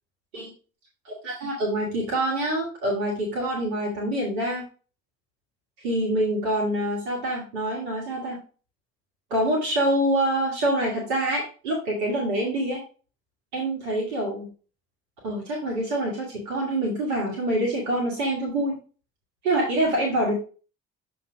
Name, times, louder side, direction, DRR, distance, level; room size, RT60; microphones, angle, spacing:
voice 1, 1.0-4.6 5.8-8.4 9.3-12.8 13.5-14.5 15.2-18.8 19.4-20.3, right 1 dB, 85° right, -3 dB, 1.6 m, -26 dB
7.2 x 3.1 x 4.8 m, 0.37 s
hypercardioid pair, 50°, 32 cm